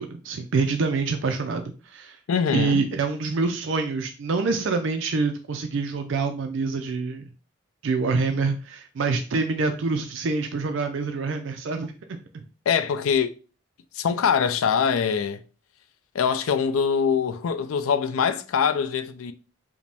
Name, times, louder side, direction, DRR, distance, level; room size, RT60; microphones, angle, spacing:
voice 1, 0.0-2.2 2.5-7.3 7.8-11.9 12.3-12.4, right 4 dB, 65° right, 0.4 m, -26 dB
voice 2, 2.3-2.9 12.7-13.3 13.9-15.4 16.1-19.3, left 6 dB, 85° left, 0.4 m, -23 dB
4.9 x 2.1 x 3.4 m
head